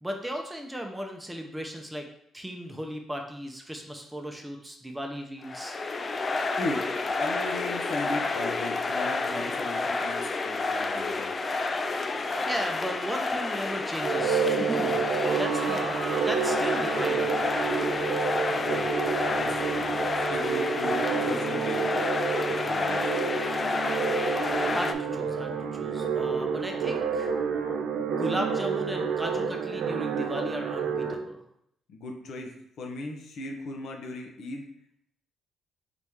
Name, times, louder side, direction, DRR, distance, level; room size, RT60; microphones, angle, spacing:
voice 1, 0.0-2.1 2.3-5.8 12.2-15.1 15.3-17.3 24.7-27.3 28.2-31.4, equal, 10° right, 3 dB, 0.6 m, -36 dB
sound 1, 5.4-24.9, left 3 dB, 35° left, 0.4 m, -30 dB
voice 2, 6.6-11.4 18.5-18.9 19.3-22.1 22.5-23.1 31.9-32.5 32.8-34.7, left 2 dB, 70° left, 2 dB, 0.8 m, -37 dB
sound 2, 14.0-31.1, right 6 dB, 75° right, 0.5 m, -29 dB
4.0 x 3.0 x 3.5 m, 0.74 s
cardioid pair, 90°, 0 cm